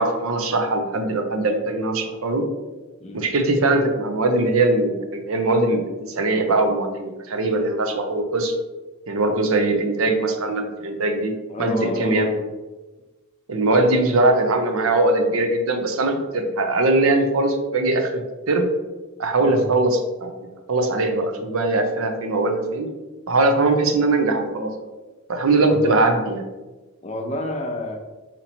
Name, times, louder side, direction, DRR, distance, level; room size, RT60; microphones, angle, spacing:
voice 1, 0.0-2.5 3.1-8.5 9.1-11.3 11.6-12.3 13.5-18.2 18.5-18.7 19.2-22.9 23.3-24.7 25.3-26.4, right 2 dB, 75° right, 5 dB, 0.6 m, -21 dB
voice 2, 3.0-3.4 11.5-12.4 19.4-19.7 25.6-26.0 27.0-28.0, left 1 dB, 30° left, 3 dB, 0.5 m, -29 dB
4.2 x 2.9 x 4.2 m, 1.2 s
head